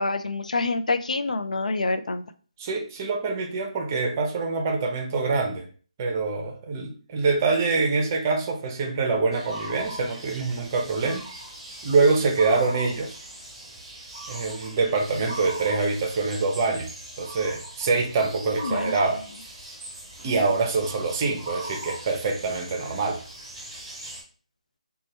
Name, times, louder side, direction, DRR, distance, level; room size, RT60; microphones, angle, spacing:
voice 1, 0.0-2.2 18.6-18.9, left 3 dB, 85° left, 9 dB, 0.4 m, -26 dB
voice 2, 2.6-5.6 6.0-11.2 11.8-13.2 14.3-16.9 17.2-19.2 20.2-23.2, right 4 dB, 25° right, 3 dB, 0.6 m, -25 dB
sound 1, 9.3-24.2, right 1 dB, 5° right, 1.0 m, -40 dB
4.1 x 2.2 x 3.2 m, 0.41 s
hypercardioid pair, 165°, 4 cm